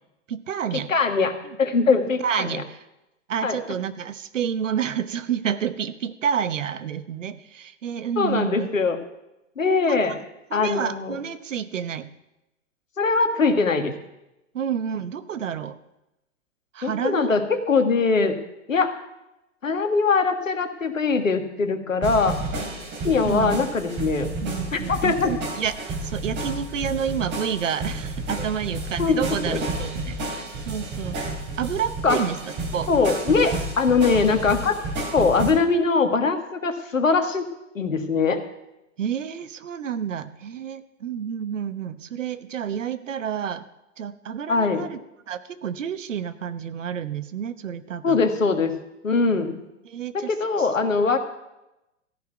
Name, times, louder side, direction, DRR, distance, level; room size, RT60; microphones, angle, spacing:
voice 1, 0.3-0.9 2.2-2.8 3.3-8.7 9.9-10.2 10.5-12.1 14.5-15.8 16.7-17.3 22.5-22.9 23.2-23.7 24.4-31.2 31.6-32.4 32.7-32.9 39.0-43.7 44.0-45.0 45.3-48.2 49.8-50.3 50.6-50.7, right 8 dB, 75° right, 13 dB, 1.0 m, -29 dB
voice 2, 0.9-2.6 3.4-3.6 8.2-9.0 9.6-10.2 10.5-11.2 13.0-13.9 16.8-18.4 18.7-18.9 19.6-22.4 23.0-24.3 24.7-25.3 29.0-29.2 29.5-29.7 32.0-32.2 32.9-34.7 35.1-37.4 37.7-38.4 44.5-44.8 48.0-48.7 49.0-49.6 50.1-51.2, left 4 dB, 85° left, 7 dB, 1.6 m, -22 dB
sound 1, 22.0-35.5, right 2 dB, 30° right, 3.1 m, -31 dB
14.0 x 5.9 x 9.0 m, 0.92 s
figure-of-eight pair, 105°, 38 cm